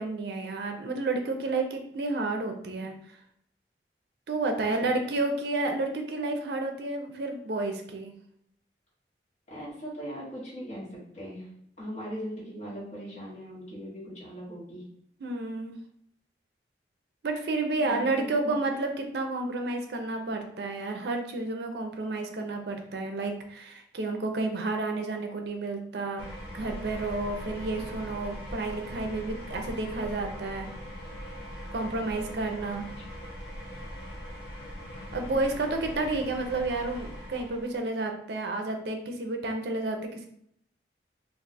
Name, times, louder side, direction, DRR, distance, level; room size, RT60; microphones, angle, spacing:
voice 1, 0.0-2.9 4.3-8.2 15.2-15.8 17.2-26.3 26.5-30.7 31.7-32.9 35.1-40.3, right 2 dB, 65° right, 4 dB, 0.4 m, -31 dB
voice 2, 4.5-4.9 9.5-11.5 11.8-14.9 17.9-18.5 31.9-32.4 35.3-35.5, equal, 45° left, -7 dB, 1.2 m, -40 dB
sound 1, 26.2-37.8, equal, 60° left, 0.6 m, -41 dB
2.4 x 2.3 x 3.9 m, 0.70 s
head